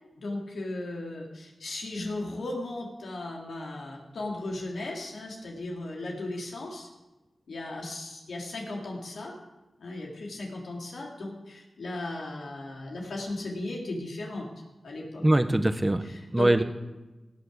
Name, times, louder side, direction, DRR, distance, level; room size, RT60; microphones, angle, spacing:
voice 1, 0.2-6.9 7.5-9.3 9.8-14.4 14.8-15.2 16.0-16.5, left 2 dB, 80° left, -1 dB, 3.1 m, -36 dB
voice 2, 15.2-16.0 16.3-16.6, right 1 dB, 20° right, 9 dB, 1.3 m, -22 dB
17.5 x 6.7 x 6.6 m, 1.1 s
cardioid pair, 45°, 0 cm